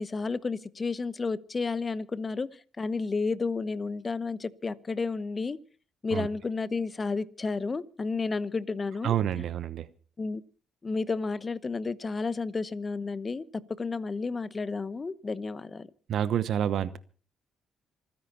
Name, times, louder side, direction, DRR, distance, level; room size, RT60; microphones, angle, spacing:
voice 1, 0.0-5.6 6.0-9.2 10.2-10.4 10.8-15.9, left 4 dB, 30° left, 1.0 m, -31 dB
voice 2, 9.0-9.9 16.1-17.0, right 10 dB, 70° right, 1.0 m, -28 dB
27.0 x 10.0 x 4.3 m
cardioid pair, 90°, 0 cm